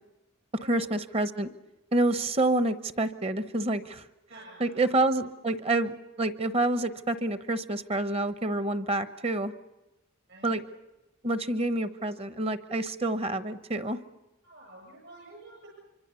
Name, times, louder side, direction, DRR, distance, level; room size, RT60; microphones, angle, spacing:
voice 1, 0.7-1.5 1.9-4.0 4.6-9.5 10.4-10.6 11.2-14.0, right 2 dB, 30° right, 12 dB, 1.0 m, -28 dB
voice 2, 4.3-4.8 10.3-10.6 14.4-15.7, right 2 dB, 60° right, 0 dB, 7.8 m, -49 dB
25.0 x 25.0 x 7.0 m, 0.99 s
head